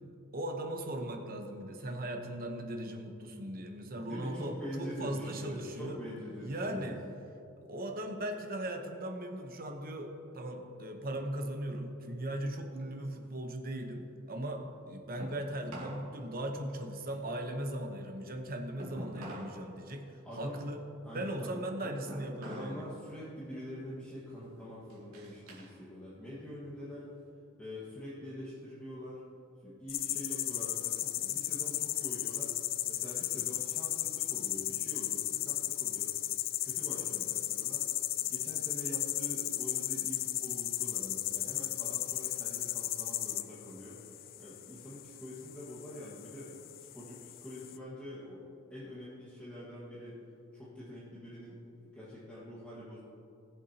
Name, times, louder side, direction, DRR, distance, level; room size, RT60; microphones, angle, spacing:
voice 1, 0.3-6.0 6.4-7.0 7.6-22.9, right 1 dB, 40° right, 4 dB, 1.0 m, -38 dB
voice 2, 4.0-6.9 20.2-20.6 21.0-21.6 22.4-27.1 27.6-29.2 29.6-32.5 32.9-36.2 36.6-37.8 38.2-44.0 44.4-46.5 46.8-48.4 48.7-50.2 50.5-53.0, equal, 5° left, -10 dB, 1.7 m, -45 dB
sound 1, 13.0-16.1 16.4-19.6 19.9-22.8 23.2-23.6 24.1-25.8 26.1-27.3, right 1 dB, 80° right, 2.6 m, -48 dB
sound 2, 29.9-47.8, left 14 dB, 40° left, 0.3 m, -35 dB
20.0 x 7.1 x 2.9 m, 2.7 s
head